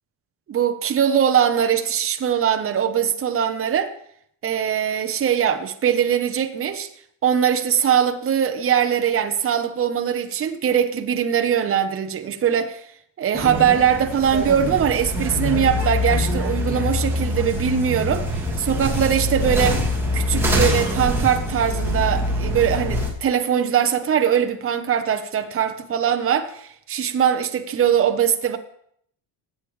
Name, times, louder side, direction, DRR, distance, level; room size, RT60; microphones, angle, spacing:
voice 1, 0.5-3.9 4.4-6.9 7.2-12.8 13.2-18.3 18.6-19.8 20.1-28.6, right 8 dB, 30° right, 0.9 m, -21 dB
sound 1, 13.3-23.1, left 1 dB, 5° right, 2.5 m, -24 dB
20.5 x 8.8 x 3.3 m
cardioid pair, 140°, 46 cm